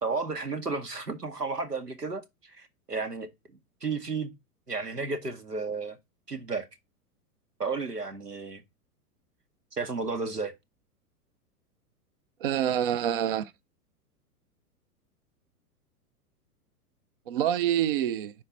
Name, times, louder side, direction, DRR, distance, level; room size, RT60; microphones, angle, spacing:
voice 1, 0.0-3.3 3.8-4.3 4.7-6.0 6.3-6.7 7.6-8.6 9.7-10.5, right 4 dB, 85° right, 1.3 m, -33 dB
voice 2, 12.4-13.5 17.3-18.3, right 10 dB, 40° right, 0.4 m, -26 dB
5.5 x 4.3 x 6.2 m
figure-of-eight pair, 105°, 46 cm